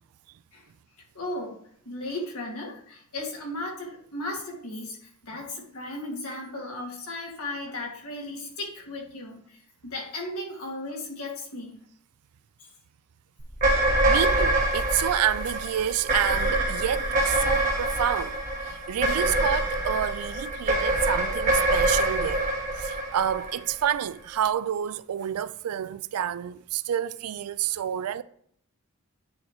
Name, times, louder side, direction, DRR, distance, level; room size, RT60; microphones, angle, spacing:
voice 1, 1.1-1.6 1.8-11.8 12.6-12.7 13.9-14.0 21.0-21.1, left 1 dB, 75° left, 2.2 m, -36 dB
sound 1, 13.5-24.0, right 1 dB, 35° right, 1.4 m, -25 dB
voice 2, 14.1-22.5 22.8-28.2, right 10 dB, 85° right, 0.4 m, -29 dB
9.4 x 3.1 x 4.6 m
head